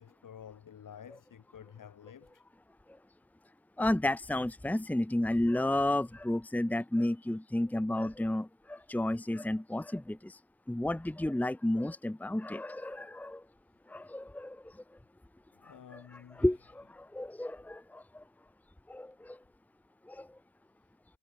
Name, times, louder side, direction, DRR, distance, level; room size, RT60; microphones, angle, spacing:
voice 1, 0.0-2.4 15.6-16.5, left 8 dB, 55° left, 6.7 m, -51 dB
voice 2, 3.8-10.4 10.7-13.4 13.9-14.6 15.7-18.2 18.9-19.4 20.1-20.3, left 1 dB, 5° left, 1.3 m, -32 dB
wide cardioid pair, 175°, 38 cm